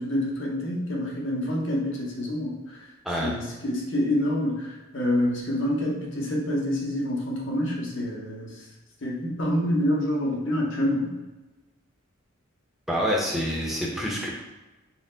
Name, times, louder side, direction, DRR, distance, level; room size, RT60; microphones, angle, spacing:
voice 1, 0.0-2.9 3.2-8.6 9.0-11.2, left 1 dB, 60° left, -2 dB, 0.8 m, -27 dB
voice 2, 3.0-3.3 12.9-14.3, equal, ahead, -3 dB, 0.5 m, -27 dB
4.1 x 2.1 x 3.7 m, 1.1 s
head